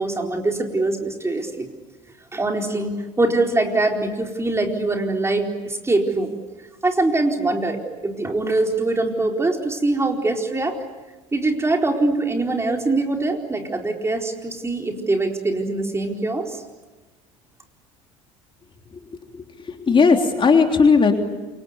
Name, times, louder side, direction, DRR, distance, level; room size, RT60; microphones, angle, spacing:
voice 1, 0.0-1.7 2.3-6.4 6.8-10.8 11.3-16.6, right 2 dB, 15° right, 2 dB, 4.3 m, -23 dB
voice 2, 19.1-21.1, left 5 dB, 30° left, 4 dB, 3.4 m, -17 dB
27.5 x 25.0 x 8.3 m, 1.2 s
hypercardioid pair, 65°, 16 cm